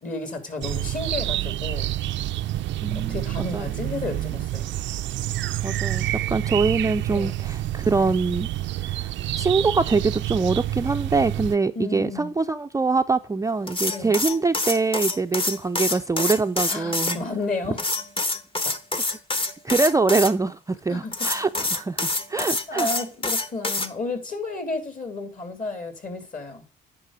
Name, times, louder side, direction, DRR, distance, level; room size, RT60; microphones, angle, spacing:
voice 1, 0.0-1.9 2.9-4.7 7.1-7.3 11.7-12.3 13.9-14.2 16.7-17.8 18.6-18.7 20.9-21.1 22.7-26.6, left 3 dB, 40° left, 3.1 m, -32 dB
sound 1, 0.6-11.6, right 14 dB, 70° right, 0.4 m, -28 dB
voice 2, 2.8-3.2 3.5-3.7 5.6-8.5 8.8-9.1 9.4-17.2 19.1-19.2 19.6-22.9, right 4 dB, 15° right, 0.4 m, -24 dB
sound 2, 13.7-17.2 17.8-20.3 21.1-23.9, left 2 dB, 25° left, 1.2 m, -26 dB
9.8 x 5.4 x 5.0 m
cardioid pair, 90°, 20 cm